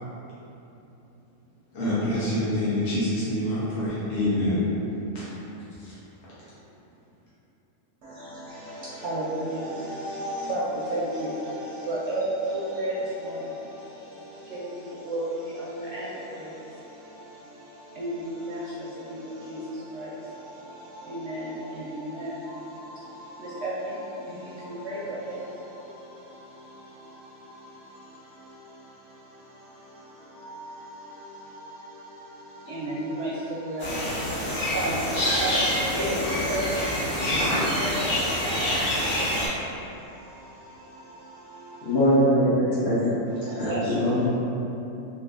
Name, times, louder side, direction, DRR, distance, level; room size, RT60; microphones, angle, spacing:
voice 1, 1.7-4.6 5.1-5.3, left 1 dB, 55° left, -11 dB, 1.1 m, -26 dB
voice 2, 8.0-42.0 43.4-44.3, right 1 dB, 65° right, -8 dB, 0.7 m, -34 dB
sound 1, 33.8-39.5, equal, 25° left, 0.7 m, -26 dB
voice 3, 41.8-43.1 43.6-44.4, equal, 85° left, -13 dB, 1.7 m, -22 dB
3.7 x 2.5 x 2.4 m, 3.0 s
omnidirectional pair, 1.5 m